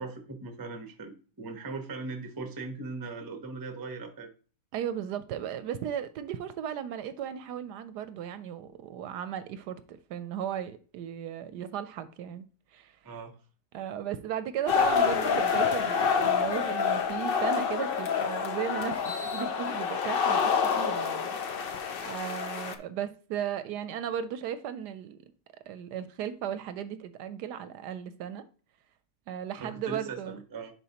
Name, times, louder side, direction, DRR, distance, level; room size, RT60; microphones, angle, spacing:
voice 1, 0.0-4.3 13.0-13.3 29.5-30.7, right 3 dB, 20° right, 0.5 m, -39 dB
voice 2, 4.7-12.5 12.7-13.0 13.7-21.7 22.0-25.2 25.7-28.4 29.3-30.4, right 9 dB, 75° right, 1.1 m, -36 dB
sound 1, 14.7-22.7, left 6 dB, 90° left, 0.5 m, -27 dB
10.0 x 4.3 x 2.9 m
omnidirectional pair, 1.9 m